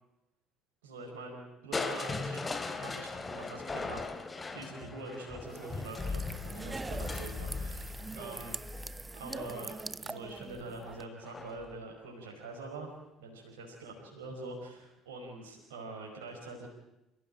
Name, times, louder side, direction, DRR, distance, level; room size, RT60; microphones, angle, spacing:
voice 1, 0.8-8.6 9.1-12.9 13.2-16.7, right 2 dB, 75° right, 0 dB, 5.1 m, -45 dB
Crushing, 1.7-9.7 11.2-11.7 12.2-12.3, left 3 dB, 25° left, 3.0 m, -39 dB
sound 1, 5.4-11.0, right 3 dB, 20° right, 0.8 m, -43 dB
28.5 x 15.5 x 9.2 m, 0.95 s
figure-of-eight pair, 55°, 0 cm